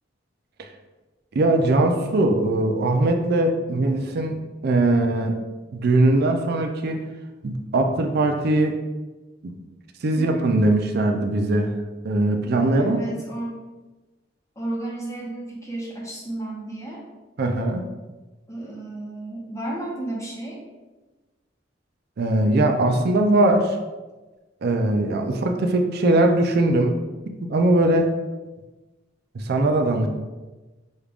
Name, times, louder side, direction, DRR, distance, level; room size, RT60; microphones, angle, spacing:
voice 1, 1.3-5.4 5.7-7.0 7.4-8.8 9.4-9.5 10.0-11.7 12.0-13.0 17.4-17.8 22.2-23.8 24.6-26.9 27.5-28.2 29.3-30.1, right 2 dB, 55° right, 4 dB, 0.4 m, -20 dB
voice 2, 10.1-10.5 12.8-13.6 14.6-17.0 18.5-20.6, right 1 dB, 15° left, -3 dB, 0.9 m, -33 dB
6.2 x 2.4 x 3.4 m, 1.2 s
head